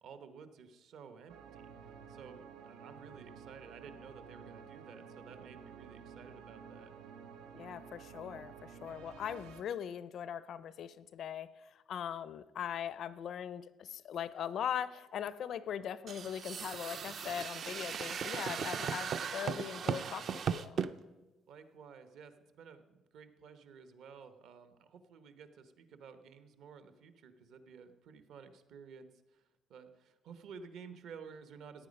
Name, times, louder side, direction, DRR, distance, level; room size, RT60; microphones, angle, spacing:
voice 1, 0.0-6.9 21.5-31.9, right 6 dB, 60° right, 10 dB, 1.0 m, -53 dB
sound 1, 1.3-9.6, right 6 dB, 85° right, 0.9 m, -52 dB
voice 2, 7.5-20.8, left 9 dB, 45° left, 17 dB, 0.4 m, -40 dB
sound 2, 16.1-20.9, right 7 dB, 40° right, 0.4 m, -37 dB
15.0 x 9.4 x 5.3 m, 1.1 s
cardioid pair, 175°, 0 cm